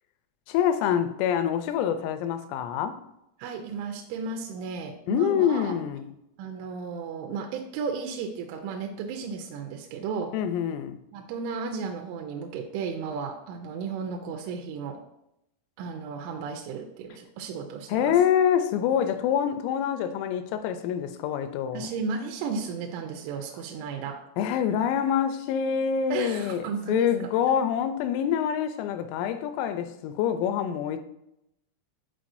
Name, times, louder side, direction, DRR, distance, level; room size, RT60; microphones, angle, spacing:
voice 1, 0.5-3.0 5.1-6.1 10.3-11.0 17.9-21.9 24.4-31.0, left 9 dB, 85° left, 3.2 m, -26 dB
voice 2, 3.4-5.8 6.4-10.3 11.1-15.0 15.8-18.1 21.7-24.2 26.1-27.3, right 5 dB, 80° right, 2.8 m, -34 dB
10.0 x 4.2 x 2.6 m
omnidirectional pair, 5.9 m